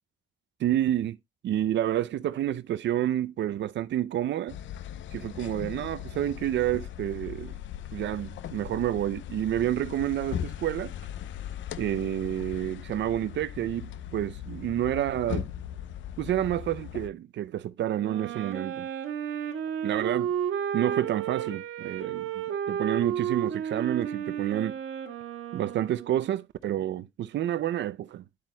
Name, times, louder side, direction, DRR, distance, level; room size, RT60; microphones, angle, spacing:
voice 1, 0.6-1.2 1.4-4.5 5.1-7.5 7.9-10.9 11.8-15.5 16.2-18.9 19.8-20.3 20.7-24.8 25.5-28.2, right 12 dB, 65° right, 0.5 m, -29 dB
sound 1, 4.5-17.1, left 10 dB, 70° left, 0.6 m, -39 dB
Wind instrument woodwind instrument, 18.0-26.3, right 8 dB, 90° right, 1.6 m, -32 dB
10.0 x 7.5 x 2.2 m
cardioid pair, 90°, 20 cm